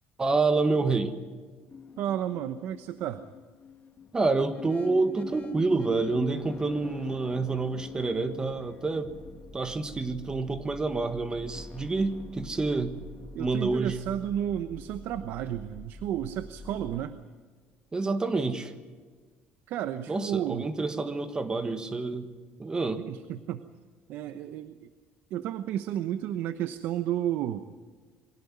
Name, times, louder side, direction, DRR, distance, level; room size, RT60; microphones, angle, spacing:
voice 1, 0.2-1.2 4.1-9.1 9.5-13.0 13.4-13.9 17.9-18.7 20.1-22.3 22.6-23.0, right 3 dB, 20° right, 10 dB, 1.5 m, -28 dB
sound 1, 1.7-17.0, left 5 dB, 35° left, 2.5 m, -45 dB
voice 2, 2.0-3.2 13.3-17.2 19.7-20.7 23.1-23.6 24.1-24.9 25.3-27.7, right 11 dB, 70° right, 11 dB, 0.9 m, -32 dB
23.5 x 17.0 x 9.6 m, 1.5 s
cardioid pair, 120°, 4 cm